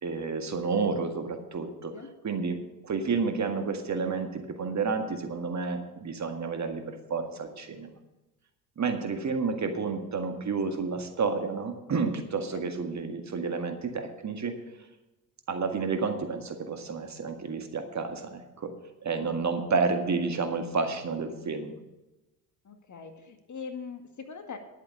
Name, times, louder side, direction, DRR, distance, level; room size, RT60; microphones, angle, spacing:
voice 1, 0.0-1.9 2.2-2.6 2.8-7.9 8.8-14.5 15.5-18.7 19.0-21.7, right 4 dB, 35° right, 6 dB, 1.9 m, -30 dB
voice 2, 19.1-19.5 22.6-24.6, left 5 dB, 40° left, 6 dB, 1.9 m, -42 dB
11.0 x 8.4 x 6.7 m, 1.0 s
hypercardioid pair, 60°, 48 cm